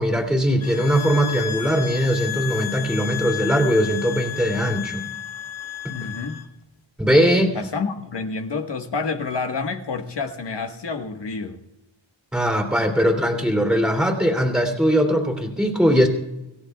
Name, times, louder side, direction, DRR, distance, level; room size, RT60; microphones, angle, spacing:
voice 1, 0.0-5.1 5.8-5.9 7.0-7.5 12.3-16.1, equal, ahead, 2 dB, 2.9 m, -20 dB
sound 1, 0.6-6.5, left 12 dB, 80° left, 1.6 m, -32 dB
voice 2, 5.9-6.4 7.5-11.6, left 4 dB, 60° left, 4 dB, 1.6 m, -28 dB
26.5 x 16.0 x 2.4 m, 0.98 s
wide cardioid pair, 135°, 46 cm